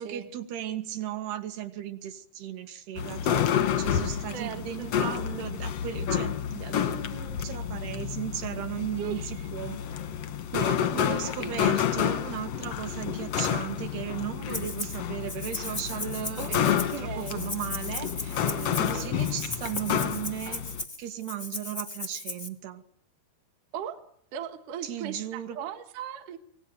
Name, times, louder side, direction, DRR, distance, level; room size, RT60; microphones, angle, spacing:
voice 1, 0.0-9.8 10.7-18.5 18.8-20.6 21.0-22.8 24.8-25.6, right 11 dB, 75° right, 7 dB, 3.9 m, -36 dB
sound 1, 3.0-20.8, left 9 dB, 70° left, 1.5 m, -30 dB
voice 2, 4.3-5.0 9.0-9.5 10.5-11.8 16.4-16.5 16.8-17.4 18.4-19.1 23.7-24.0 24.3-26.4, right 8 dB, 60° right, 8 dB, 2.6 m, -38 dB
Rattle (instrument), 14.5-15.0 15.3-22.5, left 3 dB, 55° left, 0.4 m, -37 dB
26.0 x 18.5 x 9.3 m, 0.74 s
omnidirectional pair, 4.7 m